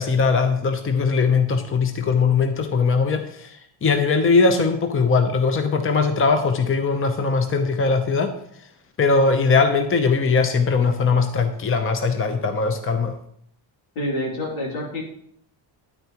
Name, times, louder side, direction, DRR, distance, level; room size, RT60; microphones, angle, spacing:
voice 1, 0.0-8.3 9.0-13.1, left 4 dB, 25° left, 7 dB, 0.8 m, -20 dB
voice 2, 13.9-15.0, left 1 dB, 90° left, -3 dB, 3.3 m, -27 dB
9.5 x 8.8 x 3.0 m, 0.69 s
cardioid pair, 105°, 48 cm